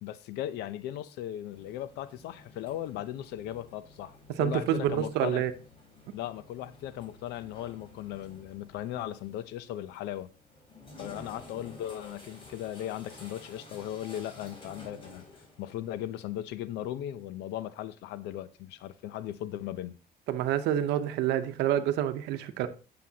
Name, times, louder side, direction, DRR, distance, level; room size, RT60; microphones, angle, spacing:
voice 1, 0.0-5.4 6.1-10.3 11.0-15.3 15.6-20.0, left 12 dB, 90° left, 0.7 m, -37 dB
sound 1, 1.5-16.4, left 2 dB, 30° left, 3.6 m, -52 dB
voice 2, 4.4-5.5 20.3-22.7, right 11 dB, 85° right, 0.8 m, -28 dB
9.4 x 6.8 x 2.9 m
cardioid pair, 110°, 17 cm